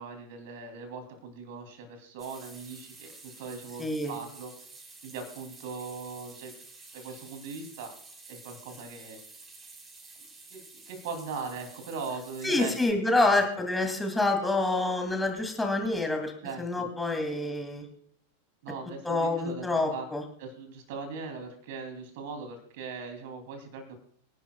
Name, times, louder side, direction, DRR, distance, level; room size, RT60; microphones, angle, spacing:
voice 1, 0.0-4.5 5.0-6.5 6.9-7.9 8.3-9.2 10.5-13.0 16.4-16.9 18.6-20.1 20.4-24.0, right 4 dB, 50° right, 6 dB, 2.9 m, -40 dB
sound 1, 2.2-12.9, right 3 dB, 20° right, 5.8 m, -50 dB
voice 2, 3.8-4.2 12.4-16.3 16.6-17.8 19.0-20.2, left 2 dB, 5° left, 4 dB, 2.6 m, -27 dB
25.0 x 11.0 x 2.3 m, 0.64 s
figure-of-eight pair, 90°, 0 cm